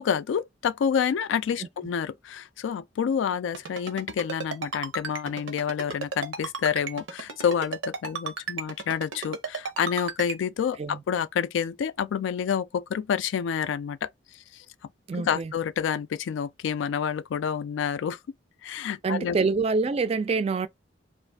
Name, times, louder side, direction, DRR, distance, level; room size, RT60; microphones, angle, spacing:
voice 1, 0.0-14.1 15.2-18.2 18.6-19.4, left 7 dB, 80° left, 0.3 m, -28 dB
Ringtone, 3.5-10.4, right 4 dB, 85° right, 0.7 m, -33 dB
voice 2, 15.1-15.5 19.0-20.7, right 4 dB, 35° right, 0.3 m, -26 dB
2.5 x 2.4 x 3.4 m
head